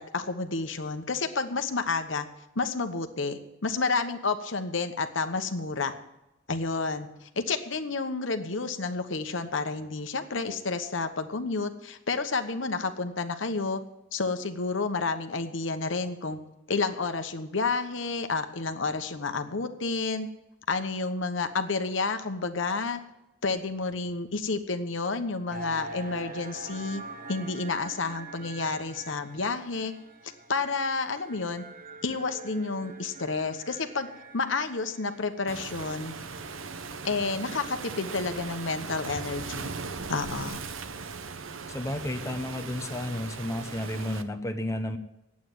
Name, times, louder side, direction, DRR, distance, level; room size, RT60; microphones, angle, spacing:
voice 1, 0.1-2.3 2.5-5.9 6.5-13.8 14.1-16.4 16.7-20.3 20.7-23.0 23.4-27.0 27.3-29.9 30.5-31.6 32.0-36.1 37.0-39.7 40.1-40.6, left 4 dB, 70° left, 7 dB, 1.1 m, -30 dB
sound 1, 25.5-36.9, right 2 dB, 45° right, 1.2 m, -45 dB
Waves surf, 35.5-44.2, right 4 dB, 90° right, 0.9 m, -38 dB
voice 2, 41.7-45.0, left 1 dB, 15° left, 5 dB, 0.8 m, -32 dB
9.6 x 8.5 x 9.4 m, 0.92 s
head